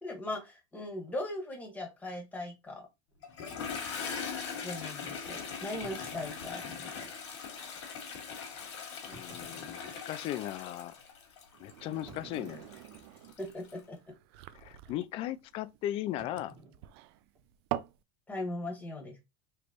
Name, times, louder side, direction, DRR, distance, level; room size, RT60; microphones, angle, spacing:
voice 1, 0.0-2.9 4.6-7.0 13.4-14.0 18.3-19.2, left 1 dB, 10° left, 1.6 m, -39 dB
sound 1, 1.1-1.3 2.0-2.1 2.4-2.5 3.1-3.2 5.8-7.0 7.8-7.9 9.0-10.4 10.9-11.0 12.1-13.2 13.4-13.8 14.1-14.4 16.2-17.8, right 2 dB, 35° right, 1.5 m, -55 dB
Toilet flush, 3.2-13.8, left 6 dB, 90° left, 1.3 m, -41 dB
voice 2, 9.1-11.0 11.6-12.7 14.5-16.5, left 13 dB, 40° left, 0.3 m, -37 dB
sound 2, 11.5-18.0, right 15 dB, 65° right, 0.4 m, -44 dB
3.3 x 3.2 x 2.4 m
supercardioid pair, 125°, 14 cm